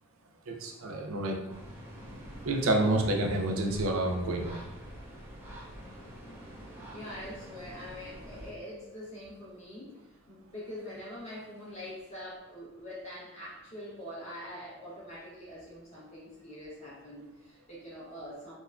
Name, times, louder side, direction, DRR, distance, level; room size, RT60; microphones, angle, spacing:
voice 1, 0.5-1.4 2.4-4.6, right 1 dB, 85° right, 1 dB, 0.5 m, -28 dB
sound 1, 1.5-8.5, equal, 10° right, 0.5 m, -46 dB
voice 2, 6.9-10.0 10.3-18.5, left 1 dB, 35° left, -8 dB, 1.2 m, -44 dB
2.8 x 2.1 x 2.4 m, 1.0 s
head